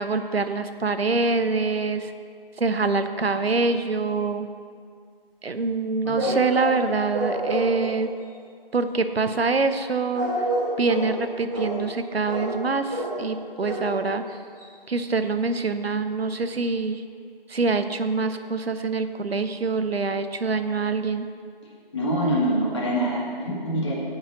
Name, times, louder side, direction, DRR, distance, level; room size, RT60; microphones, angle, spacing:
voice 1, 0.0-2.1 2.6-4.5 5.4-8.1 8.7-10.3 10.8-14.2 14.9-17.0 17.5-21.3, right 3 dB, 90° right, 9 dB, 0.7 m, -25 dB
voice 2, 6.1-6.4 21.9-23.9, equal, 30° left, -4 dB, 1.7 m, -25 dB
sound 1, 6.2-6.8 7.1-7.9 10.1-11.2 11.5-11.8 12.3-12.6 12.9-13.2 13.6-13.9 14.3-14.4 14.6-14.7, right 1 dB, 20° right, 1.9 m, -27 dB
7.3 x 5.6 x 7.4 m, 2.1 s
figure-of-eight pair, 160°, 30 cm